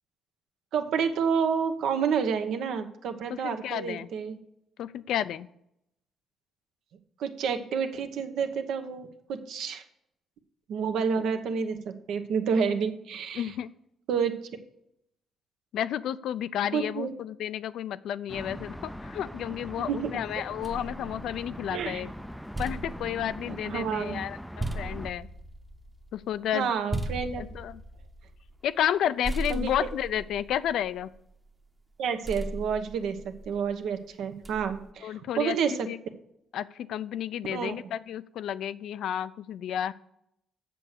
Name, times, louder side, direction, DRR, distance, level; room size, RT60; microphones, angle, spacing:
voice 1, 0.7-4.4 7.2-9.8 10.7-13.5 14.1-14.4 16.7-17.1 19.8-20.2 21.7-22.0 23.5-24.2 26.5-27.4 29.5-29.7 32.0-35.9 37.5-37.9, right 6 dB, 80° right, 7 dB, 1.0 m, -29 dB
voice 2, 3.3-4.1 4.8-5.5 13.3-13.7 15.7-22.1 22.6-25.3 26.1-26.7 27.4-27.8 28.6-31.1 35.0-36.0 36.5-39.9, left 10 dB, 75° left, 15 dB, 0.4 m, -31 dB
sound 1, 18.3-25.1, equal, ahead, 0.4 m, -41 dB
sound 2, 20.6-21.9 22.3-29.0 29.2-31.5 32.2-33.7 34.4-34.9, right 1 dB, 15° right, 0.9 m, -38 dB
7.6 x 6.8 x 6.5 m, 0.79 s
cardioid pair, 90°, 0 cm